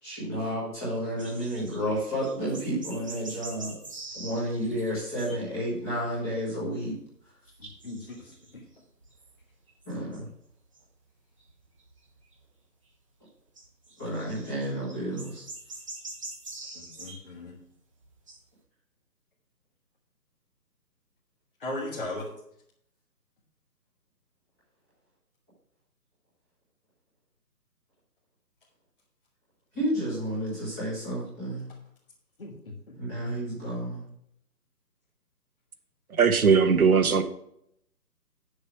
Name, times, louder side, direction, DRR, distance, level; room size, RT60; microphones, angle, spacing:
voice 1, 0.0-3.7 4.1-7.0 9.8-10.3 14.0-15.4 29.7-31.7 33.0-34.0, equal, 5° left, -9 dB, 1.5 m, -31 dB
sound 1, 1.2-5.6 5.8-6.4 6.8-7.1 7.4-10.4 10.7-10.8 11.4-12.3 13.6-17.3 17.6-17.7 18.0-18.4, right 2 dB, 20° right, 1.1 m, -45 dB
voice 2, 7.8-8.6 16.7-17.5 21.6-22.3 32.4-32.9 33.2-33.3, left 2 dB, 35° left, -3 dB, 1.3 m, -38 dB
voice 3, 36.2-37.2, right 6 dB, 55° right, 9 dB, 1.2 m, -19 dB
9.5 x 6.7 x 4.5 m, 0.74 s
hypercardioid pair, 170°, 50 cm